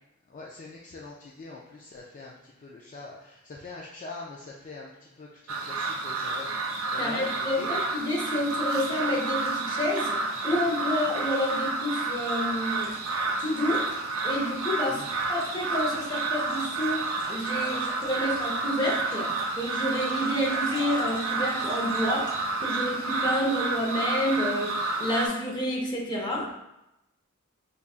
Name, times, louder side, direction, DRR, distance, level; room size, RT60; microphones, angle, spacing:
voice 1, 0.3-6.5 6.9-7.8 14.9-15.1, left 3 dB, 35° left, -3 dB, 0.3 m, -43 dB
sound 1, 5.5-25.3, right 3 dB, 70° right, 0.5 m, -30 dB
voice 2, 7.0-13.0 13.4-13.9 14.2-26.6, left 1 dB, 20° left, -3 dB, 0.7 m, -29 dB
sound 2, 12.2-23.9, right 1 dB, 20° right, 0.8 m, -45 dB
5.0 x 2.3 x 2.4 m, 0.90 s
head